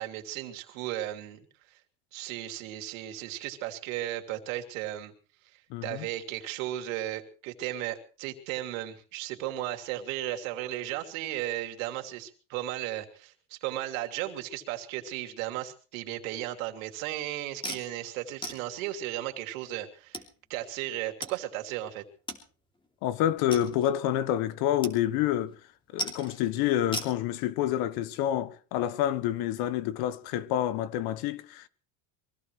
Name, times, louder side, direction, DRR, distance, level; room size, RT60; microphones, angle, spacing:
voice 1, 0.0-1.5 2.1-5.1 5.5-20.2 20.5-22.0, right 14 dB, 90° right, 3.0 m, -35 dB
voice 2, 5.7-6.1 23.0-25.5 25.9-31.7, left 12 dB, 70° left, 1.4 m, -28 dB
sound 1, 17.6-17.9 18.4-18.6 19.5-19.6 20.1-20.3 21.2-21.3 21.6-21.7 22.3-22.4 22.8-22.9 23.5-24.0 24.8-25.0 25.2-25.6 26.0-26.4 26.9-27.1, left 1 dB, 10° left, 2.9 m, -36 dB
24.0 x 16.5 x 3.3 m
cardioid pair, 135°, 39 cm